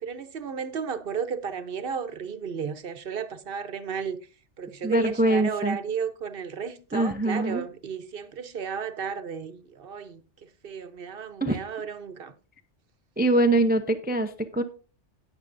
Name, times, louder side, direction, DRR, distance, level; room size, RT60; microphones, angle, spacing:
voice 1, 0.0-4.2 4.6-12.3, right 6 dB, 55° right, 1.0 m, -33 dB
voice 2, 4.8-5.8 6.9-7.6 11.4-11.6 13.2-14.6, right 1 dB, 10° right, 0.5 m, -23 dB
19.0 x 6.7 x 2.6 m
omnidirectional pair, 1.2 m